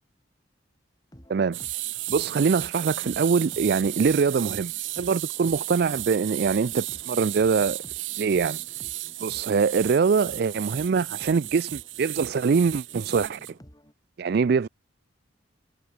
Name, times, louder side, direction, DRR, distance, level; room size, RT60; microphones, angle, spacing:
sound 1, 1.1-13.9, equal, 20° left, 5.8 m, -51 dB
sound 2, 1.5-13.5, right 17 dB, 85° right, 1.1 m, -34 dB
voice 1, 2.1-7.8 8.2-8.6 9.2-13.4 14.2-14.7, right 5 dB, 55° right, 0.4 m, -23 dB
head